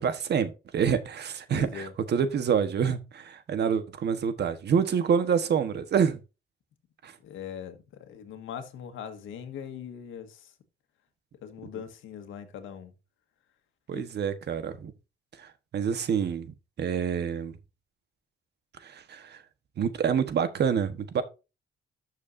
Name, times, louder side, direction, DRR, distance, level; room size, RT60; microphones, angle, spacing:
voice 1, 0.0-6.2 7.0-7.1 13.9-14.9 15.4-15.5 15.7-17.5 18.8-19.4 19.8-21.2, right 7 dB, 60° right, 1.4 m, -27 dB
voice 2, 1.5-1.9 7.2-10.5 11.4-12.9 13.9-14.1, left 8 dB, 80° left, 1.7 m, -41 dB
12.0 x 6.6 x 2.7 m
cardioid pair, 90°, 20 cm